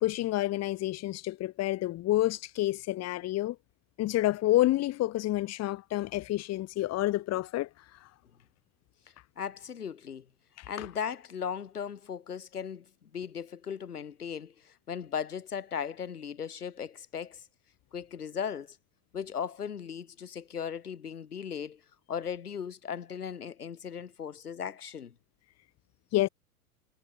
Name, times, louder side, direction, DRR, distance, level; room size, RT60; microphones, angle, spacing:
voice 1, 0.0-3.6 4.0-8.1 10.6-10.9 26.1-26.3, left 16 dB, 35° left, 2.9 m, -29 dB
voice 2, 9.4-10.3 10.6-17.5 17.9-18.8 19.1-21.8 22.1-25.1, left 7 dB, 75° left, 5.6 m, -37 dB
figure-of-eight pair, 90°, 46 cm